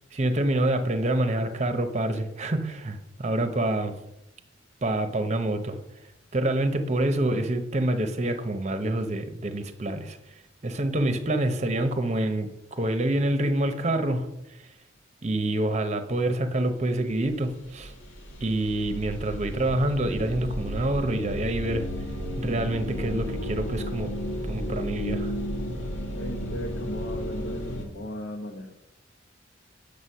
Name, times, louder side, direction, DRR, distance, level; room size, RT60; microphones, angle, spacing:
voice 1, 0.1-3.9 4.8-5.8 6.3-10.2 10.6-14.3 15.2-17.9 18.4-21.9 22.4-24.1 24.4-25.3, right 1 dB, 35° right, 8 dB, 0.9 m, -27 dB
sound 1, 16.8-16.9 17.1-27.9, equal, 85° left, 1.9 m, -33 dB
voice 2, 26.1-28.7, equal, 55° left, -2 dB, 1.2 m, -37 dB
8.1 x 6.7 x 5.6 m, 0.86 s
head